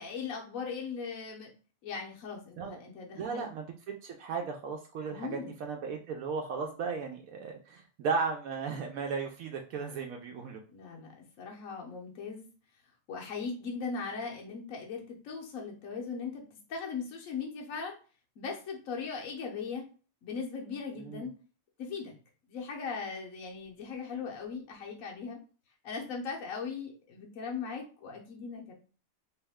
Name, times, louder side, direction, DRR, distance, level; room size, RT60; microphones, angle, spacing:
voice 1, 0.0-1.5 1.8-3.5 5.1-5.6 10.7-12.5 13.1-16.4 16.7-18.0 18.4-19.9 20.2-21.3 21.8-22.1 22.5-25.4 25.8-28.7, left 5 dB, 75° left, -1 dB, 1.2 m, -39 dB
voice 2, 3.2-3.7 4.0-10.6 21.0-21.2, right 5 dB, 85° right, 2 dB, 1.0 m, -35 dB
3.1 x 3.1 x 3.5 m, 0.37 s
omnidirectional pair, 1.4 m